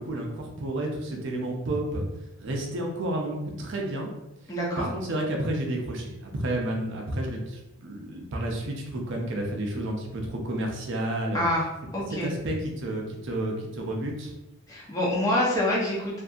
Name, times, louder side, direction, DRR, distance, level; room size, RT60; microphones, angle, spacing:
voice 1, 0.0-2.0 2.4-4.1 4.8-11.5 12.1-14.3, right 1 dB, 55° right, 1 dB, 0.5 m, -31 dB
voice 2, 4.5-4.9 11.3-11.6 11.9-12.3 14.7-16.2, left 1 dB, 15° left, -5 dB, 0.6 m, -26 dB
2.6 x 2.5 x 2.3 m, 0.94 s
head